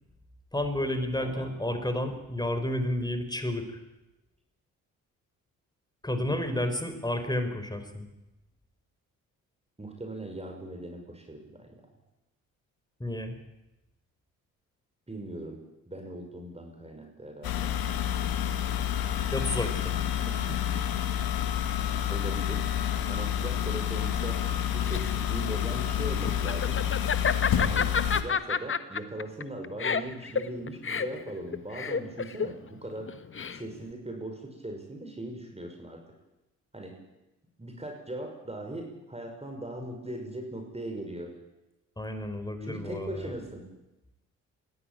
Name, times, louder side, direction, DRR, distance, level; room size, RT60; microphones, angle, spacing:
voice 1, 0.5-3.8 6.0-8.1 13.0-13.4 19.3-20.0 42.0-43.3, left 1 dB, 10° left, 8 dB, 4.9 m, -31 dB
voice 2, 1.2-1.6 6.2-6.8 9.8-11.8 15.1-17.7 20.5-20.6 22.1-22.7 23.1-24.4 24.7-26.8 27.6-33.1 33.5-36.0 36.7-37.0 37.6-41.3 42.6-43.6, right 1 dB, 15° right, 3 dB, 5.8 m, -39 dB
sound 1, 17.4-28.2, left 10 dB, 60° left, 1.9 m, -29 dB
Laughter, 24.5-33.9, left 6 dB, 30° left, 1.3 m, -30 dB
21.5 x 16.0 x 9.1 m, 0.98 s
hypercardioid pair, 45°, 40 cm